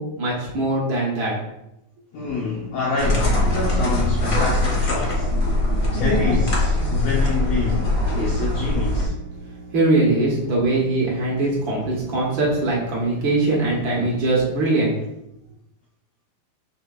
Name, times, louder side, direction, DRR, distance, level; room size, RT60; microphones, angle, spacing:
voice 1, 0.0-1.3 9.7-14.9, right 2 dB, 80° right, -3 dB, 1.1 m, -21 dB
voice 2, 2.1-5.3 5.9-9.1, left 4 dB, 80° left, -3 dB, 1.5 m, -27 dB
sound 1, 2.3-14.4, right 3 dB, 55° right, 1.4 m, -42 dB
sound 2, 3.0-9.1, left 1 dB, 55° left, 0.9 m, -21 dB
7.5 x 5.7 x 2.4 m, 0.86 s
omnidirectional pair, 4.0 m